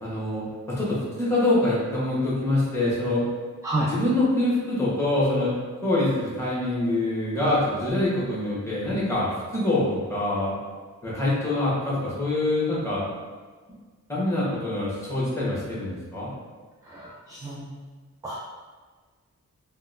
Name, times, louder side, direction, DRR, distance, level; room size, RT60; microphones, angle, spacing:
voice 1, 0.0-3.2 3.8-5.5 5.8-10.5 11.0-13.1 14.1-16.3, left 1 dB, 10° left, -7 dB, 1.1 m, -25 dB
voice 2, 3.6-3.9 17.4-17.7 18.2-18.4, right 1 dB, 10° right, -5 dB, 0.3 m, -27 dB
3.8 x 2.1 x 2.5 m, 1.5 s
wide cardioid pair, 130°, 31 cm